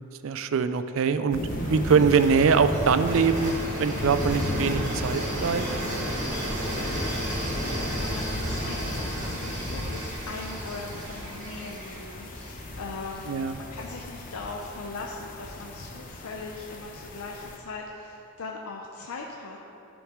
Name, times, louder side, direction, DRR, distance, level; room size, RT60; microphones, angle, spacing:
voice 1, 0.2-1.4 1.7-5.6 13.3-13.5, right 5 dB, 65° right, 11 dB, 0.4 m, -23 dB
sound 1, 1.3-17.6, left 1 dB, 40° left, 0.7 m, -36 dB
sound 2, 1.5-13.4, equal, 40° right, 1.8 m, -33 dB
sound 3, 3.1-12.0, right 1 dB, 85° right, 1.7 m, -46 dB
voice 2, 7.2-19.6, left 3 dB, 80° left, 0 dB, 0.6 m, -40 dB
11.0 x 6.2 x 3.6 m, 2.9 s
head